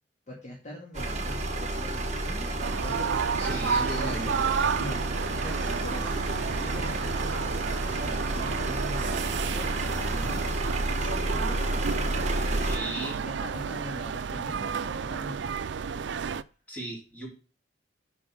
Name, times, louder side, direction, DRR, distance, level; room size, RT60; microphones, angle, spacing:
voice 1, 0.3-3.5 4.0-5.1 5.4-10.6 10.9-11.7 13.2-15.7, left 1 dB, 40° left, -2 dB, 2.0 m, -43 dB
sound 1, 0.9-12.8, right 1 dB, 40° right, 1.5 m, -30 dB
sound 2, 2.6-16.4, right 6 dB, 80° right, 0.4 m, -31 dB
voice 2, 3.4-4.4 10.1-10.4 12.6-13.2 16.7-17.3, right 1 dB, 10° left, -4 dB, 4.0 m, -36 dB
7.1 x 5.4 x 6.0 m, 0.37 s
head